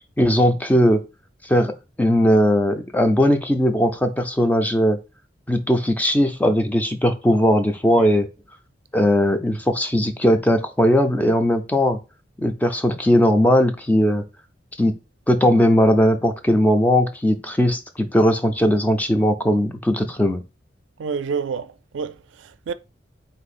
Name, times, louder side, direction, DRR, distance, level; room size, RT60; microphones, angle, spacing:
voice 1, 0.2-1.0 1.4-1.7 2.0-5.0 5.5-8.3 8.9-12.0 12.4-14.2 14.8-15.0 15.3-20.4, equal, 10° left, 0.4 m, -18 dB
voice 2, 21.0-22.7, right 6 dB, 75° right, 0.4 m, -29 dB
4.3 x 2.7 x 4.1 m
head